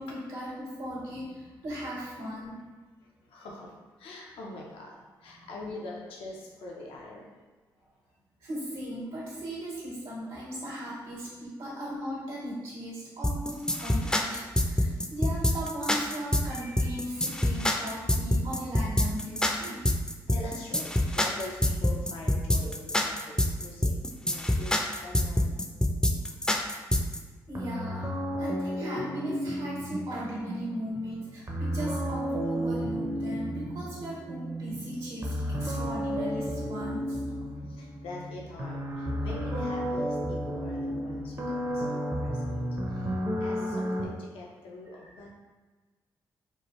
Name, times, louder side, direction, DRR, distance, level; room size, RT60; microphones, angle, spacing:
voice 1, 0.0-2.6 5.3-5.5 8.4-19.9 27.5-28.1 28.4-37.5 45.0-45.1, equal, 75° right, -6 dB, 1.3 m, -37 dB
voice 2, 3.2-3.7 4.0-7.3 20.3-23.9 24.2-25.5 37.7-42.6 42.9-43.1 43.4-45.3, left 2 dB, 80° left, -2 dB, 0.6 m, -43 dB
sound 1, 13.2-27.2, left 1 dB, 10° left, 0.4 m, -26 dB
sound 2, 27.5-44.1, equal, 35° right, 0.6 m, -33 dB
3.2 x 2.2 x 3.0 m, 1.3 s
hypercardioid pair, 40°, 9 cm